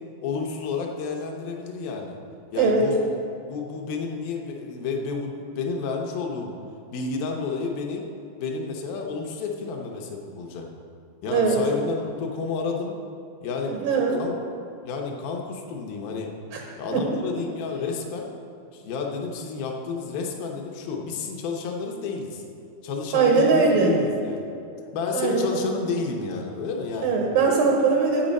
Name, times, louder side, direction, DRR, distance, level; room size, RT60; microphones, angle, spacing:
voice 1, 0.2-2.2 2.5-3.0 3.5-6.5 6.9-8.1 8.4-10.7 11.2-13.0 13.4-14.3 14.8-16.3 16.8-18.3 18.7-22.4 22.8-24.4 24.9-27.2, left 4 dB, 75° left, 1 dB, 2.2 m, -30 dB
voice 2, 11.3-11.7 13.7-14.2 16.5-16.6 16.9-17.1 23.1-24.0 25.1-25.7 27.0-28.3, right 4 dB, 80° right, 0 dB, 2.0 m, -21 dB
10.0 x 8.1 x 5.3 m, 2.6 s
omnidirectional pair, 5.2 m